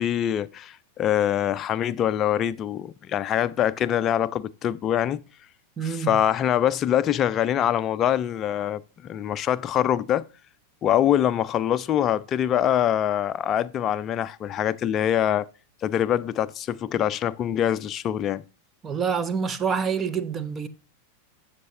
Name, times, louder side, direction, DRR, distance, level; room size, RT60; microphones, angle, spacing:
voice 1, 0.0-5.2 5.8-10.3 10.8-15.5 15.8-18.4, left 10 dB, 30° left, 0.4 m, -24 dB
voice 2, 5.8-6.1 18.8-20.7, right 6 dB, 20° right, 0.7 m, -27 dB
13.0 x 6.6 x 2.9 m
figure-of-eight pair, 90°, 0 cm